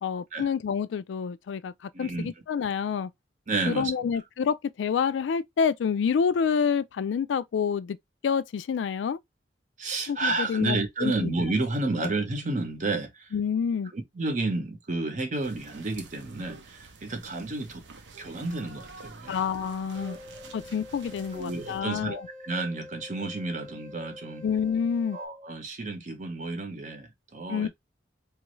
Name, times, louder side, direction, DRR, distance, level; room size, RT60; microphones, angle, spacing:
voice 1, 0.0-3.1 3.7-8.0 8.2-9.2 10.1-11.3 12.0-12.1 13.3-13.9 19.3-20.2 20.5-22.2 24.4-25.2 27.5-27.7, left 6 dB, 75° left, 0.3 m, -28 dB
voice 2, 1.9-2.3 3.5-3.9 9.8-13.3 13.9-17.8 18.2-19.3 20.0-20.5 21.3-24.4 25.1-27.7, right 2 dB, 45° right, 0.8 m, -31 dB
sound 1, 15.4-21.8, right 4 dB, 70° right, 0.6 m, -47 dB
sound 2, 19.9-25.3, left 2 dB, 5° left, 0.7 m, -46 dB
3.0 x 2.4 x 3.0 m
head